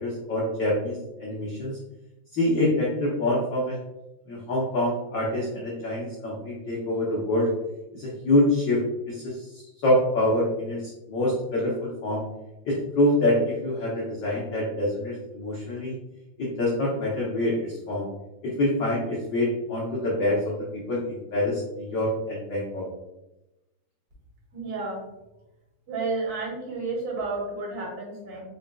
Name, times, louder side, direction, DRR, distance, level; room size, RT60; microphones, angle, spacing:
voice 1, 0.0-1.8 2.3-3.8 4.3-7.5 7.9-12.2 12.6-16.0 16.4-18.1 18.4-22.9, left 1 dB, 90° left, -5 dB, 1.0 m, -26 dB
voice 2, 24.5-25.0 25.9-28.4, right 3 dB, 40° right, -4 dB, 1.6 m, -31 dB
4.8 x 3.9 x 2.3 m, 0.95 s
omnidirectional pair, 3.4 m